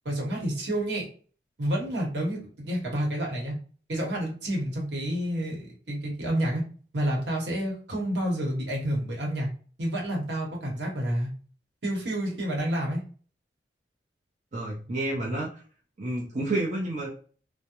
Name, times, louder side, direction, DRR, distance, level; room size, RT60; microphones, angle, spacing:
voice 1, 0.0-1.1 1.6-3.6 3.9-6.6 6.9-9.5 9.8-11.3 11.8-13.0, right 1 dB, 75° right, -1 dB, 1.0 m, -29 dB
voice 2, 14.5-15.6 16.0-17.1, right 2 dB, 40° right, -4 dB, 0.6 m, -30 dB
2.3 x 2.1 x 2.9 m, 0.41 s
head